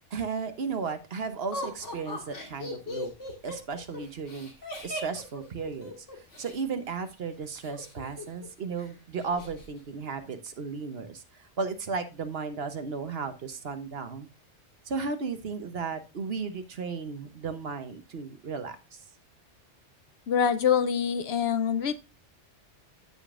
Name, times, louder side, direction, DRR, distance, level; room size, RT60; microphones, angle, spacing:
voice 1, 0.1-3.1 3.4-4.5 4.8-14.3 14.8-19.0, right 5 dB, 55° right, 8 dB, 1.1 m, -35 dB
Laughter, 1.5-6.6 7.6-8.5 8.8-8.9 9.2-9.7, left 1 dB, 80° left, 2.6 m, -38 dB
voice 2, 20.3-21.9, left 8 dB, 65° left, 12 dB, 0.8 m, -25 dB
14.5 x 5.0 x 2.4 m, 0.28 s
omnidirectional pair, 1.2 m